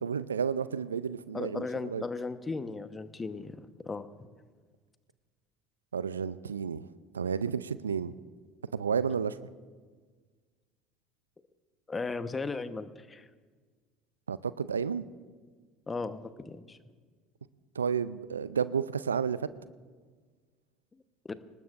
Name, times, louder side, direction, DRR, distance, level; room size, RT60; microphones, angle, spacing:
voice 1, 0.0-2.0 5.9-6.9 7.1-8.1 8.7-9.4 14.3-15.0 17.8-19.5, right 6 dB, 85° right, 16 dB, 0.4 m, -31 dB
voice 2, 1.3-4.1 11.9-13.3 15.9-16.8 21.2-21.3, left 4 dB, 25° left, 11 dB, 1.1 m, -36 dB
26.0 x 19.0 x 2.6 m, 1.5 s
hypercardioid pair, 65°, 0 cm